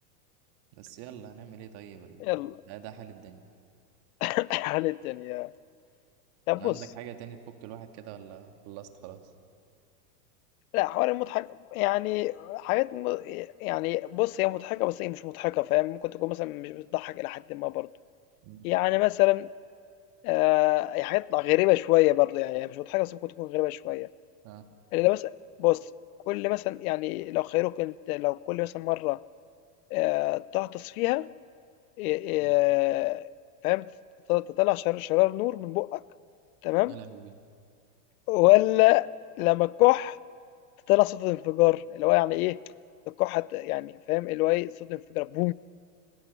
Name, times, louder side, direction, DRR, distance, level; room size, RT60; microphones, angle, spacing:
voice 1, 0.7-2.4 2.7-3.4 6.5-9.2 18.4-18.7 24.4-24.7 32.4-32.6 36.9-37.4, right 10 dB, 50° right, 6 dB, 2.0 m, -44 dB
voice 2, 2.2-2.6 4.2-5.5 6.5-6.8 10.7-17.9 18.6-19.5 20.2-24.1 24.9-25.3 25.6-25.9 26.3-29.2 29.9-31.3 32.0-33.3 33.6-33.8 34.3-36.0 36.6-37.0 38.3-39.1 39.4-40.2 40.9-42.6 43.1-45.5, left 20 dB, 60° left, 21 dB, 0.6 m, -26 dB
29.5 x 16.5 x 6.9 m, 2.3 s
hypercardioid pair, 115°, 48 cm